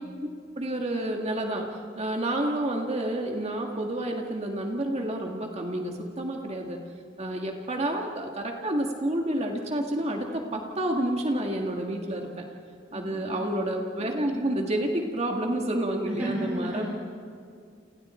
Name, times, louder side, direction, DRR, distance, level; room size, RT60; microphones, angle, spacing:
voice 1, 0.6-6.8 7.2-12.4 12.9-16.9, right 1 dB, 35° right, 1 dB, 2.0 m, -29 dB
voice 2, 12.9-13.6 16.0-16.9, right 1 dB, 10° right, -6 dB, 5.0 m, -33 dB
29.5 x 29.5 x 4.5 m, 2.3 s
head